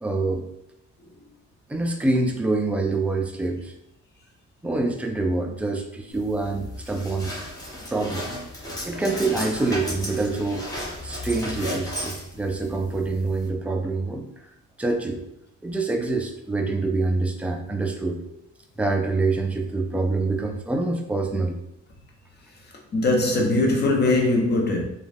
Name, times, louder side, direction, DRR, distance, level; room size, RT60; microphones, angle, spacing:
voice 1, 0.0-0.4 1.7-3.7 4.6-7.3 7.9-8.3 8.9-10.7 11.0-14.3 14.8-15.2 15.6-18.4 18.8-21.6, right 3 dB, 5° right, 0.4 m, -26 dB
sound 1, 6.1-13.5, left 1 dB, 10° left, 1.0 m, -34 dB
voice 2, 22.9-24.8, left 2 dB, 35° left, 0.8 m, -21 dB
3.2 x 2.3 x 2.5 m
cardioid pair, 90°, 30 cm